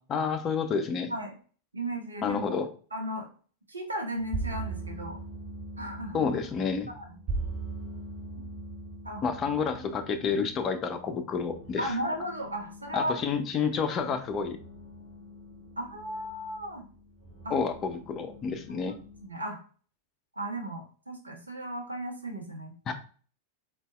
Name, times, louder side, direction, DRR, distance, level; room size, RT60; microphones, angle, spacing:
voice 1, 0.1-1.1 2.2-2.7 6.1-6.9 9.2-12.0 12.9-14.6 17.5-18.9 22.9-23.0, left 5 dB, 30° left, 7 dB, 0.4 m, -29 dB
voice 2, 1.7-2.4 2.9-3.3 3.7-5.2 5.8-6.3 6.9-7.2 8.4-8.5 9.0-9.2 11.8-13.1 14.0-14.1 15.8-16.8 17.4-17.6 18.7-18.8 19.2-19.6 20.4-22.7, right 1 dB, 80° right, 1 dB, 0.7 m, -35 dB
sound 1, 4.1-19.3, right 3 dB, 40° right, 1.0 m, -41 dB
3.9 x 2.2 x 2.3 m, 0.41 s
figure-of-eight pair, 90°, 0 cm